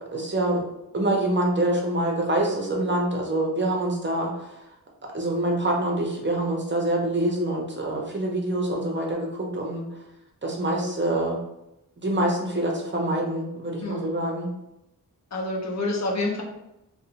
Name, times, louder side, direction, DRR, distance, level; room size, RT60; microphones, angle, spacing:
voice 1, 0.1-0.7 0.9-4.6 5.1-9.9 10.4-11.4 12.0-14.5, right 1 dB, 30° right, -1 dB, 0.6 m, -25 dB
voice 2, 13.8-14.1 15.3-16.4, left 2 dB, 45° left, -1 dB, 0.7 m, -28 dB
2.6 x 2.1 x 2.8 m, 0.87 s
wide cardioid pair, 70°, 37 cm